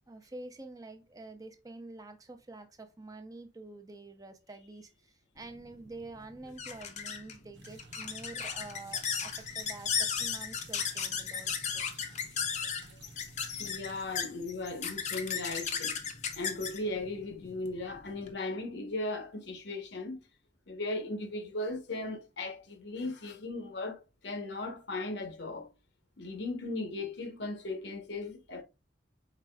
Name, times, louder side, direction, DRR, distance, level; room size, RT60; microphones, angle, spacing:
voice 1, 0.1-11.8, right 2 dB, 20° right, 0.5 m, -47 dB
sound 1, 5.4-18.3, left 7 dB, 40° left, 0.6 m, -36 dB
sound 2, 7.5-14.0, right 3 dB, 65° right, 0.7 m, -54 dB
voice 2, 13.6-16.0 16.3-20.2 20.7-25.7 26.2-28.6, left 2 dB, 65° left, 0.9 m, -37 dB
4.7 x 4.2 x 2.2 m
head